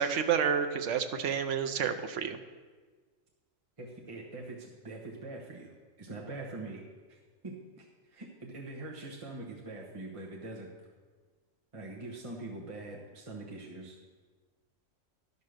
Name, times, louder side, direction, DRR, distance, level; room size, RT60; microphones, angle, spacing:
voice 1, 0.0-2.4, right 7 dB, 70° right, 8 dB, 1.1 m, -29 dB
voice 2, 3.8-5.7 6.0-6.8 7.1-7.2 7.4-10.7 11.7-14.0, right 2 dB, 25° right, -2 dB, 1.1 m, -43 dB
12.0 x 5.4 x 6.4 m, 1.4 s
omnidirectional pair, 1.3 m